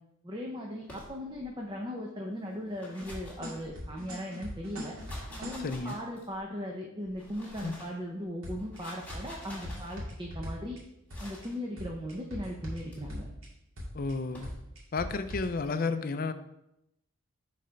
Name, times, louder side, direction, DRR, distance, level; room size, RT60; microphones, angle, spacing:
voice 1, 0.2-5.0 5.4-10.8 11.2-13.3, equal, 20° right, -1 dB, 0.7 m, -38 dB
sound 1, 0.8-1.5 2.6-4.1 4.8-6.4 7.1-8.0 8.6-10.0 11.1-11.6 12.6-13.0 14.0-14.6, equal, 5° left, 2.0 m, -48 dB
sound 2, 3.0-5.7 8.4-8.8 9.1-10.8 11.1-11.5 11.8-13.5 13.8-14.1 14.4-15.5, left 1 dB, 75° right, 2.1 m, -40 dB
voice 2, 5.6-6.0 7.6-7.7 13.9-14.5 14.9-16.3, left 4 dB, 45° left, 10 dB, 0.4 m, -32 dB
6.5 x 4.1 x 5.1 m, 0.84 s
head